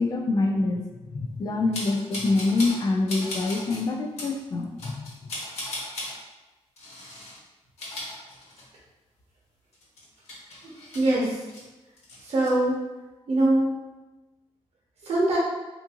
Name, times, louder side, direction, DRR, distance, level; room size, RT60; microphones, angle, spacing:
voice 1, 0.0-5.0, left 3 dB, 35° left, 2 dB, 0.3 m, -26 dB
sound 1, 1.7-2.8 3.1-3.8 4.2-4.3 4.8-6.1 6.8-7.4 7.7-8.9 9.2-9.3 9.7-11.6 12.0-12.5, left 1 dB, 70° left, 1.1 m, -37 dB
voice 2, 10.9-11.4 12.2-12.8 13.3-13.8 15.0-15.4, right 1 dB, 65° right, -5 dB, 0.8 m, -22 dB
3.5 x 2.5 x 2.8 m, 1.1 s
wide cardioid pair, 175°, 11 cm